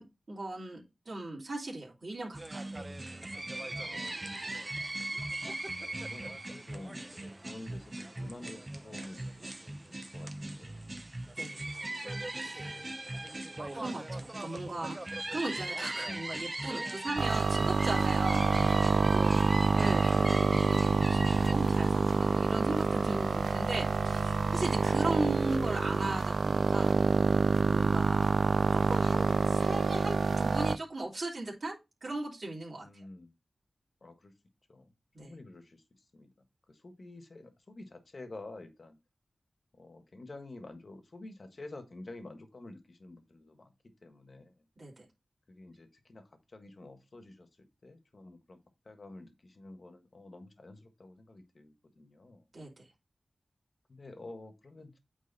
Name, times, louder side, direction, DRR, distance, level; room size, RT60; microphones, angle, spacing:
voice 1, 0.0-2.7 11.4-12.7 13.7-15.0 15.3-19.4 19.7-27.0 27.6-28.3 28.7-32.9 35.1-35.3 44.8-45.0 52.5-52.9, right 2 dB, 55° right, 2.9 m, -38 dB
sound 1, 2.3-21.5, right 2 dB, 30° right, 0.8 m, -39 dB
voice 2, 3.8-4.6 5.8-10.9 12.3-13.0 24.8-25.1 32.8-33.3 34.0-34.3 34.7-34.9 35.2-36.3 36.7-39.0 39.8-43.7 44.0-44.7 45.5-48.6 48.8-52.5 53.9-55.0, left 2 dB, 55° left, 1.4 m, -50 dB
sound 2, 17.2-30.7, right 4 dB, 80° right, 0.4 m, -27 dB
sound 3, 21.3-26.4, left 1 dB, 25° left, 0.7 m, -51 dB
8.8 x 3.6 x 3.9 m
wide cardioid pair, 60°, 0 cm